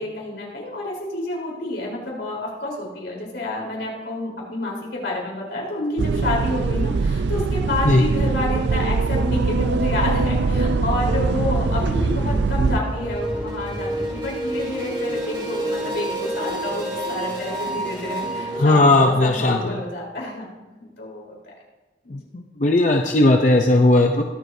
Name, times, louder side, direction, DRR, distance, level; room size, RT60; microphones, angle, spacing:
voice 1, 0.0-20.5 20.8-21.3 22.0-22.2, left 1 dB, 80° left, -3 dB, 4.0 m, -29 dB
sound 1, 6.0-12.8, right 4 dB, 75° right, 0.4 m, -22 dB
sound 2, 9.8-15.0, equal, 10° right, 3.0 m, -31 dB
sound 3, 12.8-18.8, right 1 dB, 25° right, 4.5 m, -28 dB
voice 2, 18.6-19.6 22.1-24.2, left 2 dB, 45° left, 3 dB, 0.6 m, -17 dB
22.0 x 7.9 x 2.7 m, 1.2 s
head